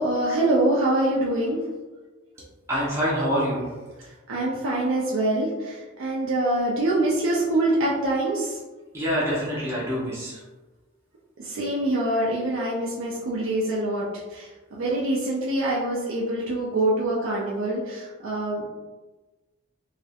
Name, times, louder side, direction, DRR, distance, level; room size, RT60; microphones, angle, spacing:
voice 1, 0.0-1.6 4.0-8.6 11.4-18.7, right 1 dB, 80° right, -5 dB, 0.4 m, -25 dB
voice 2, 2.7-3.7 8.9-10.4, equal, 15° right, -7 dB, 0.5 m, -26 dB
2.3 x 2.1 x 2.7 m, 1.2 s
head